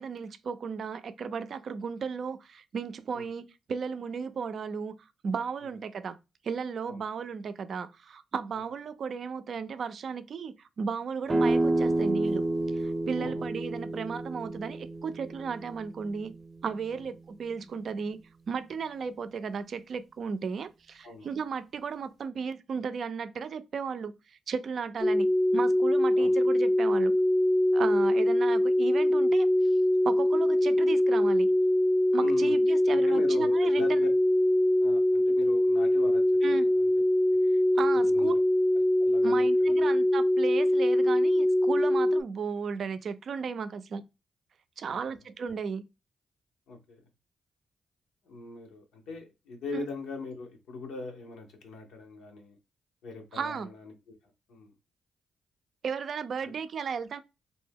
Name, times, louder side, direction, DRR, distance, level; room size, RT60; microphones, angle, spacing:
voice 1, 0.0-4.9 5.2-6.2 6.4-12.4 12.7-16.3 16.6-18.2 18.5-27.1 27.7-29.5 30.0-31.5 32.1-34.0 36.4-36.7 37.8-38.4 39.2-44.0 44.8-45.8 49.7-49.8 53.3-53.7 55.8-57.2, right 6 dB, 65° right, 0.3 m, -35 dB
sound 1, 11.3-16.9, right 2 dB, 25° right, 0.7 m, -30 dB
voice 2, 21.0-21.4 26.1-26.3 32.2-32.6 32.9-34.1 34.8-36.9 37.2-37.4 37.7-38.4 38.7-39.9 44.9-45.1 46.7-47.0 48.2-52.6 53.0-54.2 54.5-54.7 56.4-56.5, left 3 dB, 85° left, 0.8 m, -41 dB
sound 2, 25.0-42.2, left 1 dB, 10° left, 0.3 m, -23 dB
2.6 x 2.1 x 3.3 m
supercardioid pair, 55°, 0 cm